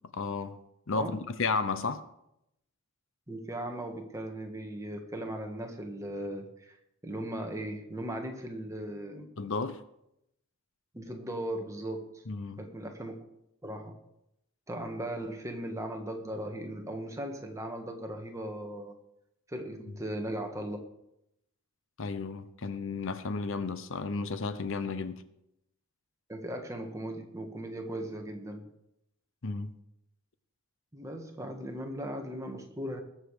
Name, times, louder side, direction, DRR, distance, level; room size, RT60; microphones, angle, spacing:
voice 1, 0.1-0.6 0.9-2.1 9.4-9.8 12.3-12.6 22.0-25.2 29.4-29.7, left 4 dB, 65° left, 0.8 m, -33 dB
voice 2, 3.3-6.8 7.0-9.3 10.9-12.1 12.6-13.2 13.6-14.0 14.7-19.0 19.5-20.8 26.3-28.6 30.9-33.0, right 1 dB, 15° right, 1.6 m, -38 dB
20.0 x 7.5 x 4.9 m
head